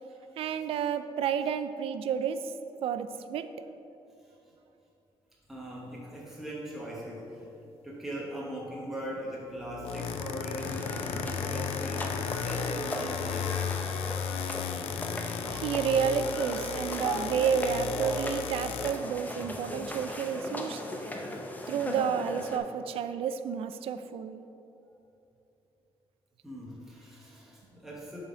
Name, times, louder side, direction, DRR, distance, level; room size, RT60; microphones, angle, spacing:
voice 1, 0.4-2.5 2.8-3.5 15.5-20.8 21.7-24.4, right 7 dB, 80° right, 10 dB, 0.4 m, -30 dB
voice 2, 5.5-7.5 7.8-10.9 11.2-14.0 15.0-15.1 26.4-28.2, right 1 dB, 5° right, -5 dB, 1.0 m, -40 dB
sound 1, 9.6-18.9, left 7 dB, 85° left, 0.4 m, -34 dB
sound 2, 10.6-22.6, left 1 dB, 15° left, 0.7 m, -38 dB
7.3 x 4.0 x 4.9 m, 2.8 s
cardioid pair, 125°, 10 cm